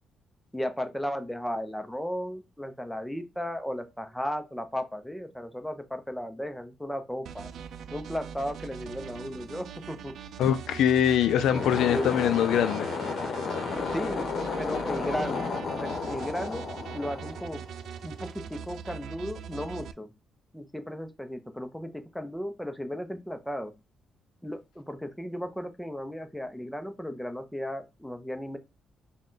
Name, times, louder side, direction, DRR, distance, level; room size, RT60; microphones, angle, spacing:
voice 1, 0.5-7.5 7.9-10.1 11.9-12.1 13.9-14.3 14.6-16.6 16.9-17.6 18.0-20.1 20.5-23.7 24.4-28.6, equal, 5° left, 0.6 m, -35 dB
sound 1, 7.3-19.9, right 8 dB, 70° right, 0.3 m, -42 dB
voice 2, 10.4-12.9, left 9 dB, 80° left, 0.3 m, -23 dB
sound 2, 11.4-17.9, left 4 dB, 50° left, 0.8 m, -32 dB
3.7 x 2.2 x 3.7 m
cardioid pair, 90°, 0 cm